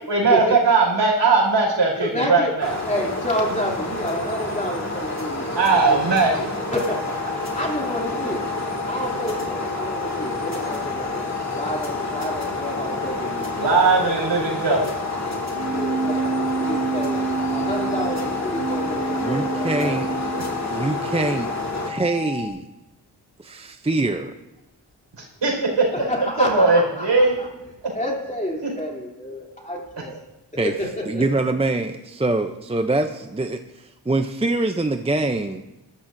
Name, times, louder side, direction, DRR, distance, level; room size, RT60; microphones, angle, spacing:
voice 1, 0.1-2.7 5.5-6.5 13.6-14.9 25.4-25.9 26.4-27.3, right 3 dB, 80° right, -1 dB, 4.7 m, -19 dB
voice 2, 1.9-2.5 2.9-5.5 5.9-6.0 6.7-8.5 8.9-11.2 11.5-13.6 14.0-14.1 15.7-20.1 25.9-27.0 27.4-27.5 27.9-30.2 30.6-31.2, left 1 dB, 15° left, -2 dB, 2.9 m, -29 dB
sound 1, 2.6-21.9, left 1 dB, 40° left, 2.2 m, -29 dB
sound 2, 6.8-22.5, left 10 dB, 75° left, 2.3 m, -34 dB
Keyboard (musical), 15.5-21.5, right 4 dB, 45° right, 1.3 m, -28 dB
voice 3, 19.2-20.1 20.6-21.5 21.8-22.7 23.4-24.3 30.6-30.7 31.1-35.6, right 2 dB, 15° right, 7 dB, 0.5 m, -24 dB
20.0 x 13.5 x 2.6 m, 0.98 s
wide cardioid pair, 115°, 43 cm